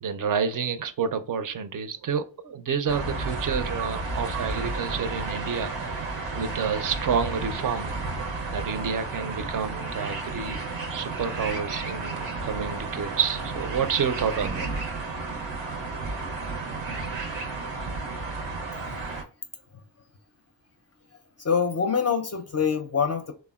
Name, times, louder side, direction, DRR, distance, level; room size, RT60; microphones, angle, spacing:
voice 1, 0.0-6.0 6.3-8.0 8.5-10.6 10.9-14.7, right 6 dB, 50° right, 0.5 m, -29 dB
sound 1, 2.9-19.2, right 3 dB, 90° right, 0.7 m, -32 dB
voice 2, 21.4-23.3, left 6 dB, 35° left, 0.4 m, -25 dB
3.3 x 2.1 x 2.2 m
cardioid pair, 50°, 43 cm